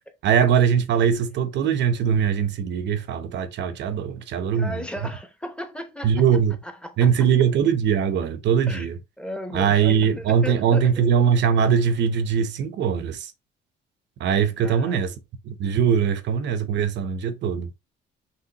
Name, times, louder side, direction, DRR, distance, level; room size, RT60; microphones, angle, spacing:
voice 1, 0.2-4.9 6.0-6.6 7.0-9.0 9.5-13.3 14.2-15.1 15.4-17.7, right 7 dB, 65° right, 0.8 m, -21 dB
voice 2, 4.5-6.2 6.6-6.9 8.7-8.9 9.2-11.1 14.6-15.1, equal, 5° left, 0.8 m, -35 dB
5.6 x 3.2 x 2.9 m
cardioid pair, 135°, 20 cm